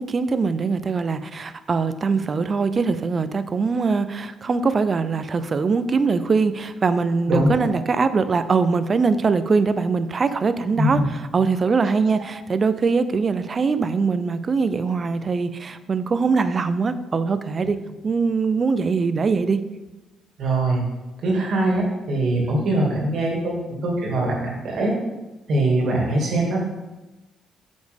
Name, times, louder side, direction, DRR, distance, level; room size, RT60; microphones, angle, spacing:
voice 1, 0.0-17.8 18.0-19.6, right 4 dB, 40° right, 12 dB, 0.4 m, -22 dB
voice 2, 7.3-7.8 10.8-11.1 20.4-20.8 21.2-24.9 25.5-26.6, right 1 dB, 70° right, -1 dB, 2.0 m, -22 dB
7.8 x 5.2 x 3.5 m, 1.1 s
cardioid pair, 90°, 0 cm